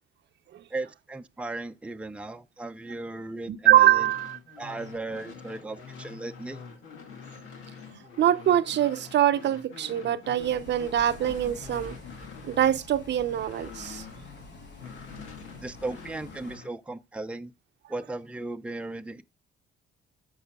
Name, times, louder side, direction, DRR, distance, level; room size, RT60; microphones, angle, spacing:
voice 1, 0.7-4.1 4.6-6.6 15.6-17.5 17.9-19.2, right 2 dB, 5° right, 0.6 m, -36 dB
voice 2, 3.5-4.4 8.2-12.0 12.5-14.0, right 12 dB, 60° right, 0.7 m, -23 dB
sound 1, 3.8-14.5 14.8-16.7, left 5 dB, 90° left, 1.9 m, -46 dB
Bus, 10.4-16.5, left 2 dB, 60° left, 3.0 m, -47 dB
14.0 x 5.6 x 2.3 m
cardioid pair, 90°, 20 cm